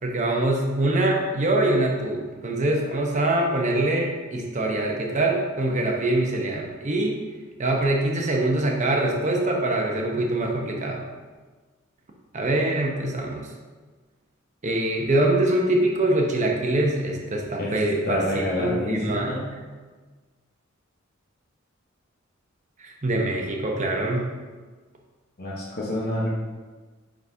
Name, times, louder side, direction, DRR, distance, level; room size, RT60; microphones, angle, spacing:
voice 1, 0.0-7.2 7.6-11.0 12.3-13.5 14.6-19.3 22.8-24.3, right 1 dB, 35° right, 0 dB, 0.9 m, -24 dB
voice 2, 18.0-19.5 25.4-26.3, left 1 dB, 50° left, -4 dB, 0.9 m, -28 dB
9.3 x 4.0 x 2.7 m, 1.4 s
head